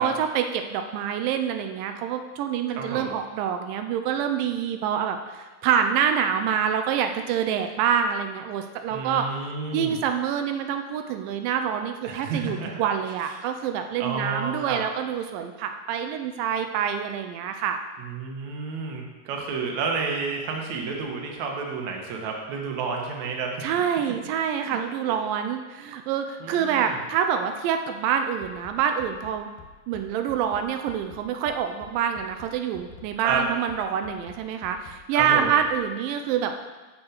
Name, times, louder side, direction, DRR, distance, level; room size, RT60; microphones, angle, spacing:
voice 1, 0.0-9.3 9.7-17.8 23.6-29.5 29.9-36.5, right 8 dB, 90° right, 6 dB, 2.3 m, -26 dB
voice 2, 2.8-3.1 8.9-9.9 12.0-12.9 14.0-14.8 18.0-23.7 24.6-24.8 25.1-25.2 26.4-27.0 33.2-33.4 35.1-35.5, right 4 dB, 65° right, 1 dB, 2.3 m, -31 dB
Bass drum, 28.4-35.8, left 7 dB, 85° left, 2.6 m, -48 dB
7.3 x 6.2 x 6.3 m, 1.2 s
omnidirectional pair, 3.8 m